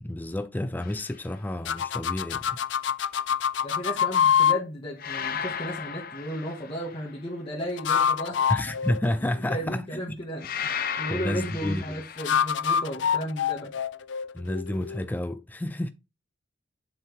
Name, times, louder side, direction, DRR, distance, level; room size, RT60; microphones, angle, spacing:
voice 1, 0.0-2.6 8.5-10.0 11.1-12.0 14.3-15.9, left 1 dB, 10° left, 0.3 m, -30 dB
sound 1, 0.8-1.2 5.0-7.2 10.4-12.5, left 7 dB, 50° left, 0.9 m, -35 dB
sound 2, 1.7-4.6 7.6-9.8 12.2-15.1, left 8 dB, 65° left, 0.5 m, -26 dB
voice 2, 3.6-8.4 9.5-10.5 11.0-13.7, equal, 30° left, 2.0 m, -34 dB
7.5 x 5.8 x 3.6 m
head